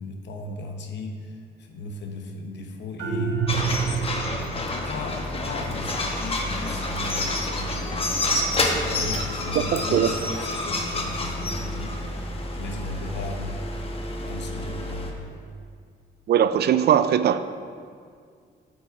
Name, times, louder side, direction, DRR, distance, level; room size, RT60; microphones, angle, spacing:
voice 1, 0.0-3.5 4.5-12.0 12.5-13.6 14.2-15.1, left 2 dB, 60° left, 3 dB, 0.9 m, -36 dB
sound 1, 3.0-4.5, right 6 dB, 85° right, 1.0 m, -26 dB
sound 2, 3.5-15.1, left 2 dB, 30° left, 1.0 m, -28 dB
voice 2, 9.5-10.1 16.3-17.4, right 9 dB, 55° right, 12 dB, 0.4 m, -20 dB
8.4 x 4.7 x 4.7 m, 2.1 s
cardioid pair, 90°, 20 cm